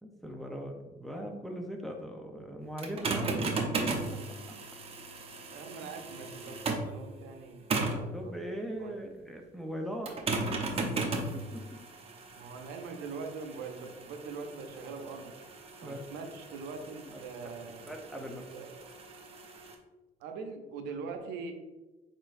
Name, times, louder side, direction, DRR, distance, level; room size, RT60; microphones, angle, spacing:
voice 1, 0.0-3.4 3.8-4.6 7.9-10.2 10.8-11.8 15.8-16.0 17.0-17.5 17.9-18.4, equal, ahead, 1 dB, 0.6 m, -40 dB
sound 1, 2.8-7.0 7.7-8.1 10.1-19.7, right 3 dB, 35° right, 0.8 m, -36 dB
voice 2, 5.5-8.3 8.8-9.0 12.3-15.3 15.8-18.7 20.2-21.5, right 4 dB, 85° right, 5 dB, 0.6 m, -42 dB
4.5 x 4.4 x 2.6 m, 1.1 s
cardioid pair, 110°, 17 cm